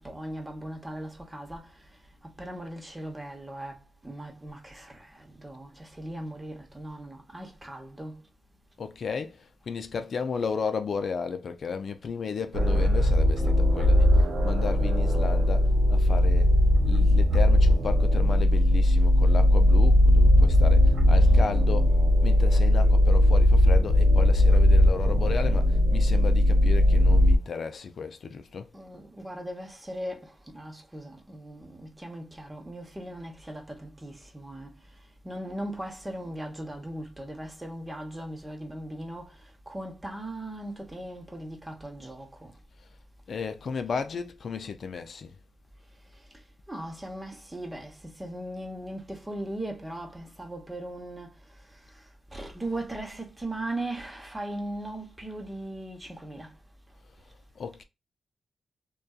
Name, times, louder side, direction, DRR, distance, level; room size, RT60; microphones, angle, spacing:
voice 1, 0.0-1.9 2.2-8.2 28.7-34.7 35.2-42.5 46.7-51.3 51.7-52.0 52.3-56.6, right 1 dB, 20° right, 0.9 m, -38 dB
voice 2, 8.8-16.5 16.8-28.7 43.3-45.3 57.6-57.8, left 5 dB, 65° left, 0.3 m, -34 dB
sound 1, 12.5-27.4, left 1 dB, 85° right, 0.6 m, -19 dB
2.5 x 2.3 x 2.3 m
cardioid pair, 60°, 0 cm